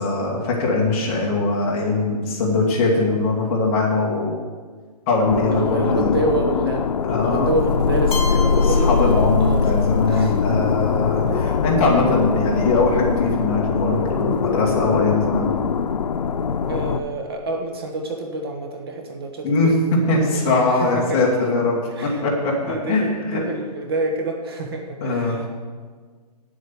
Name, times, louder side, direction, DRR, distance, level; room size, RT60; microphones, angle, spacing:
voice 1, 0.0-4.4 5.1-6.2 7.0-7.5 8.6-15.5 19.4-23.4 25.0-25.4, left 3 dB, 20° left, -3 dB, 1.8 m, -21 dB
sound 1, 5.3-17.0, left 6 dB, 85° left, 0.7 m, -22 dB
voice 2, 5.5-6.9 7.2-8.9 9.4-9.6 10.1-10.4 11.2-11.6 16.7-19.7 20.3-21.2 22.0-22.2 22.7-25.5, right 2 dB, 35° right, 3 dB, 1.1 m, -27 dB
Keyboard (musical), 8.1-10.0, left 3 dB, 55° left, 2.0 m, -32 dB
9.6 x 7.9 x 7.1 m, 1.5 s
hypercardioid pair, 175°, 21 cm